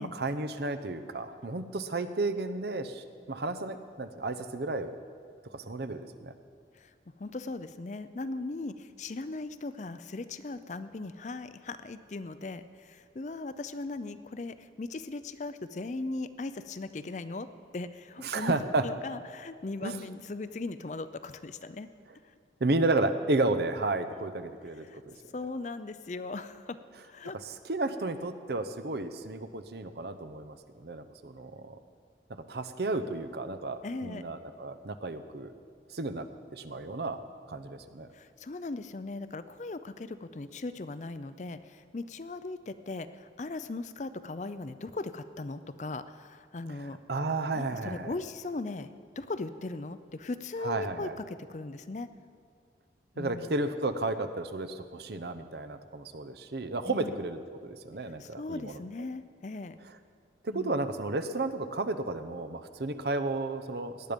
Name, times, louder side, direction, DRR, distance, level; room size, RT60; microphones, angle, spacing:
voice 1, 0.0-4.9 5.5-6.3 18.2-18.8 19.8-20.0 22.6-25.1 27.4-31.8 32.3-35.5 35.9-37.2 37.5-38.1 46.8-48.1 50.6-51.1 53.2-58.8 60.4-64.1, right 2 dB, 65° right, 9 dB, 0.8 m, -33 dB
voice 2, 7.2-17.5 17.7-18.6 18.8-21.9 24.8-25.0 25.3-26.8 27.1-27.4 33.8-34.2 38.1-47.0 47.5-52.1 53.1-53.5 56.9-57.1 58.2-59.8 60.5-60.8, left 3 dB, 40° left, 12 dB, 0.5 m, -38 dB
18.0 x 11.0 x 5.2 m, 2.2 s
head